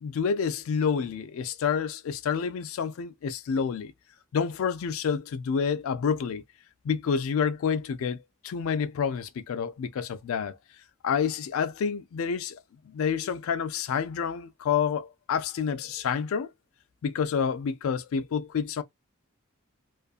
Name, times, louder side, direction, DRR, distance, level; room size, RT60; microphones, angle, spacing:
voice 1, 0.0-3.9 4.3-6.4 6.8-10.6 11.0-12.6 12.8-16.5 17.0-18.8, left 6 dB, 85° left, 0.3 m, -28 dB
2.5 x 2.5 x 2.3 m
head